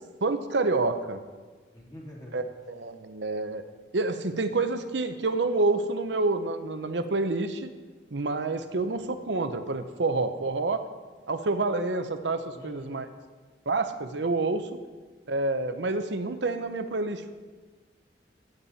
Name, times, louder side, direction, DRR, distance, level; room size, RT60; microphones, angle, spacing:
voice 1, 0.2-1.2 2.3-2.4 2.7-3.6 3.9-7.7 8.1-10.8 11.3-13.1 13.7-14.7 15.3-17.3, right 3 dB, 80° right, 9 dB, 0.8 m, -28 dB
voice 2, 1.7-2.4 8.6-8.9 12.5-13.1, left 1 dB, 20° left, -3 dB, 2.3 m, -46 dB
14.5 x 9.0 x 4.2 m, 1.4 s
head